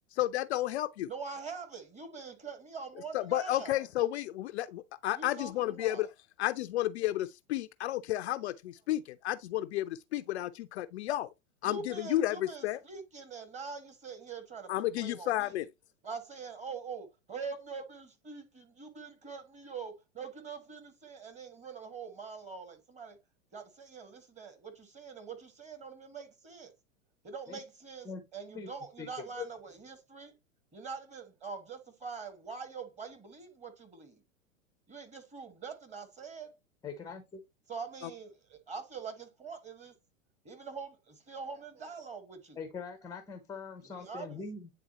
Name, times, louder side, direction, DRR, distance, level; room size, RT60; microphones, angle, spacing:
voice 1, 0.1-1.1 3.1-6.1 6.4-11.3 11.6-12.8 14.7-15.7, left 14 dB, 50° left, 0.4 m, -32 dB
voice 2, 1.1-3.9 5.1-6.1 11.6-15.6 16.0-23.2 23.5-26.7 27.2-30.3 30.7-34.2 34.9-36.5 37.7-39.9 40.4-42.6 43.9-44.4, right 5 dB, 15° right, 1.3 m, -44 dB
voice 3, 36.8-37.4 42.6-44.7, left 5 dB, 10° left, 0.6 m, -42 dB
9.2 x 3.6 x 2.9 m
hypercardioid pair, 105°, 42 cm